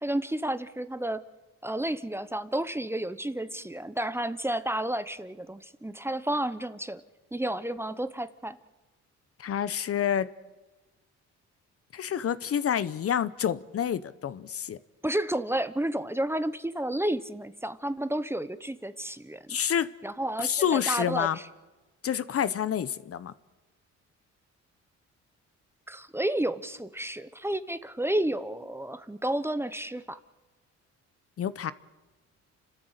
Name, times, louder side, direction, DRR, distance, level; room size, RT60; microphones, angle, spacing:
voice 1, 0.0-1.2 1.6-7.0 7.3-8.6 15.0-19.6 20.0-21.3 25.9-30.2, right 1 dB, 10° right, 13 dB, 0.9 m, -31 dB
voice 2, 9.4-10.3 11.9-14.8 19.5-19.9 20.4-21.4 22.0-23.3 31.4-31.7, left 9 dB, 50° left, 16 dB, 0.9 m, -28 dB
29.5 x 13.0 x 8.1 m, 1.2 s
cardioid pair, 90°, 30 cm